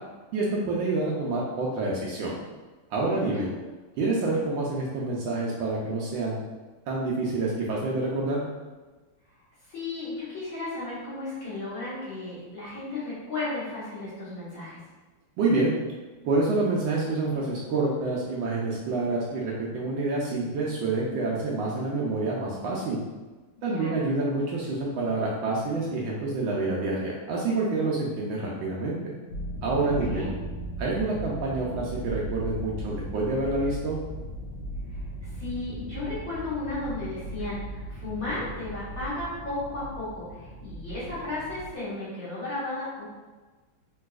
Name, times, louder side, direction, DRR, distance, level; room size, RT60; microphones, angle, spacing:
voice 1, 0.3-2.3 2.9-3.5 4.0-6.4 6.9-8.4 15.4-15.7 16.2-23.0 23.6-29.1 29.6-30.2 30.8-34.0, right 3 dB, 75° right, -4 dB, 1.2 m, -27 dB
voice 2, 3.1-3.5 9.7-14.8 23.7-23.9 30.1-30.3 34.9-43.0, left 2 dB, 45° left, -11 dB, 1.4 m, -34 dB
sound 1, 29.3-41.7, right 1 dB, 75° left, 1.1 m, -37 dB
3.9 x 2.7 x 2.3 m, 1.2 s
omnidirectional pair, 2.4 m